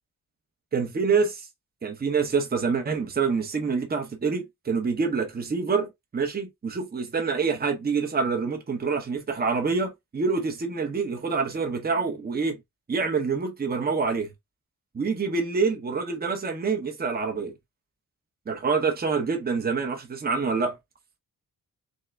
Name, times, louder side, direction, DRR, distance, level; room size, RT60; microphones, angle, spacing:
voice 1, 0.7-1.5 1.8-12.6 12.9-14.3 14.9-17.5 18.5-20.8, right 5 dB, 25° right, 0.8 m, -26 dB
3.6 x 3.4 x 3.3 m
wide cardioid pair, 170°, 35 cm